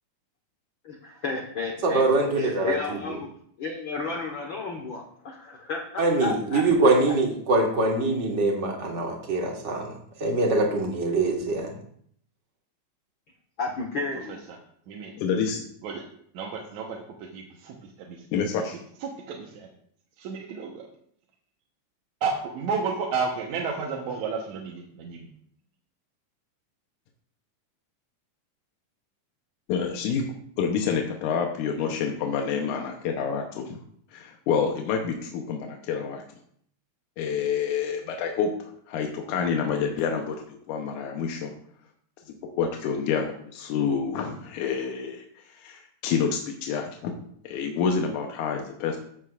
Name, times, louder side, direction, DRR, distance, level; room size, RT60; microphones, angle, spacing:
voice 1, 0.8-3.3 3.6-6.6 13.6-14.4, left 3 dB, 55° left, 0 dB, 1.5 m, -32 dB
voice 2, 1.8-3.0 6.0-9.9 10.2-11.8, right 2 dB, 35° right, 0 dB, 1.3 m, -23 dB
voice 3, 15.2-15.7 18.3-18.8 29.7-30.3 30.6-33.8 34.1-36.2 37.2-40.4 40.7-41.5 42.6-49.0, left 6 dB, 85° left, 2 dB, 2.4 m, -28 dB
voice 4, 16.3-17.0 17.3-17.8 18.1-18.2 19.0-19.7 20.2-20.8 22.2-25.3, right 5 dB, 75° right, -1 dB, 2.3 m, -31 dB
14.5 x 7.5 x 2.4 m, 0.64 s
omnidirectional pair, 3.5 m